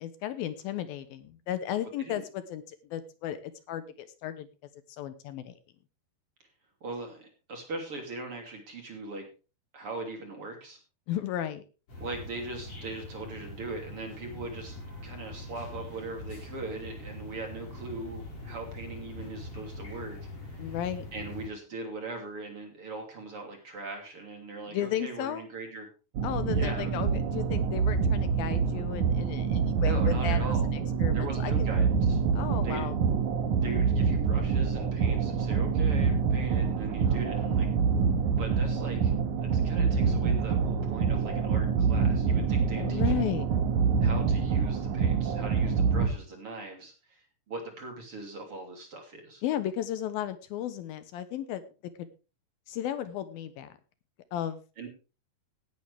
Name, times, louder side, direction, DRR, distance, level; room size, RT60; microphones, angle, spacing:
voice 1, 0.0-4.5 5.0-5.5 11.1-11.6 20.6-21.1 24.7-25.5 26.2-31.7 32.4-33.0 37.1-37.6 42.7-43.5 49.4-51.6 52.0-52.1 52.7-53.7 54.3-54.6, left 11 dB, 75° left, 12 dB, 2.6 m, -34 dB
voice 2, 6.8-9.3 9.7-10.8 12.0-14.8 15.0-20.2 20.4-20.8 21.1-25.9 26.5-26.9 29.8-30.7 31.1-32.2 32.6-32.8 33.6-37.7 38.4-39.1 39.4-43.3 44.0-49.4 54.8-54.9, right 2 dB, 40° right, 2 dB, 3.4 m, -40 dB
sound 1, 11.9-21.5, left 1 dB, 40° left, 6.8 m, -43 dB
sound 2, 26.1-46.1, right 6 dB, 60° right, 2.6 m, -26 dB
18.0 x 9.7 x 3.4 m, 0.33 s
omnidirectional pair, 4.5 m